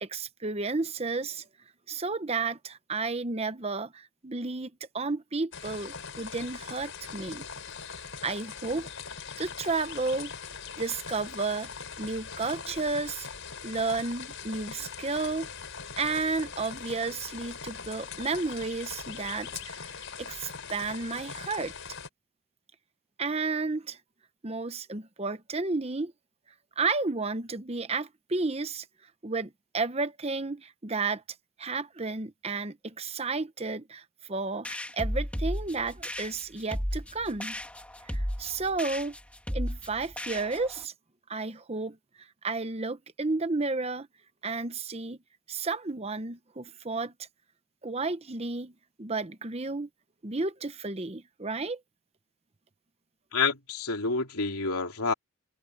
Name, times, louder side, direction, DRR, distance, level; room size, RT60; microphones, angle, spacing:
voice 1, 0.0-1.5 1.9-4.7 4.9-7.4 8.2-8.9 9.4-10.3 10.8-11.7 12.0-13.3 13.6-15.5 16.0-21.7 23.2-24.0 24.4-26.1 26.8-28.9 29.2-31.2 31.6-37.5 38.1-39.2 39.5-40.9 41.3-44.1 44.4-45.2 45.5-47.3 47.8-48.7 49.0-49.9 50.2-51.8, right 3 dB, 30° right, 0.9 m, -32 dB
sound 1, 5.5-22.1, left 6 dB, 60° left, 5.7 m, -41 dB
sound 2, 34.7-40.8, equal, 5° left, 2.9 m, -34 dB
voice 2, 53.3-55.1, left 4 dB, 90° left, 3.3 m, -28 dB
head